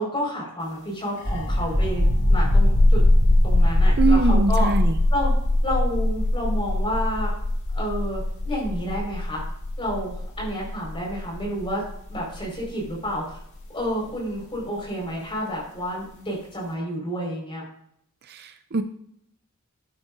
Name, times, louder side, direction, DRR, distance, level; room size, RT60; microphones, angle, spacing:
voice 1, 0.0-2.0 2.3-3.0 3.4-4.7 5.1-5.3 5.6-7.3 7.7-9.4 9.8-11.8 12.1-13.4 13.7-17.6, equal, 25° left, -3 dB, 4.9 m, -30 dB
sound 1, 1.2-14.6, left 1 dB, 55° left, 2.3 m, -21 dB
voice 2, 4.0-5.0 18.2-18.8, right 4 dB, 45° right, 9 dB, 0.5 m, -23 dB
12.5 x 10.0 x 2.6 m, 0.71 s
head